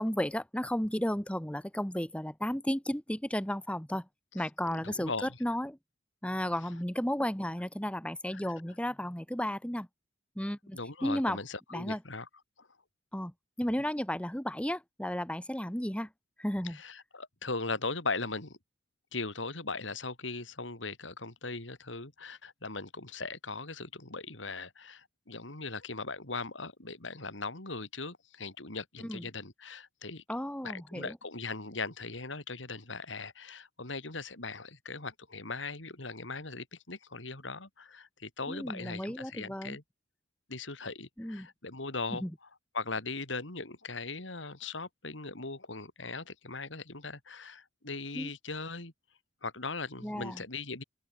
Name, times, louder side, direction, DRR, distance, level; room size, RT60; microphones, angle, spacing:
voice 1, 0.0-4.0 4.3-5.8 6.2-9.9 10.3-11.4 11.7-12.0 13.1-13.3 13.6-16.1 16.4-16.8 29.0-29.2 30.3-31.2 38.5-39.8 41.2-41.5 42.2-42.3 48.1-48.3 50.0-50.4, equal, 5° left, 1.7 m, -33 dB
voice 2, 4.8-5.4 8.3-8.4 10.7-12.3 12.6-12.7 16.6-18.6 19.1-30.2 30.6-39.8 40.5-42.5 42.7-48.9 49.4-50.8, left 3 dB, 80° left, 4.2 m, -39 dB
open air
head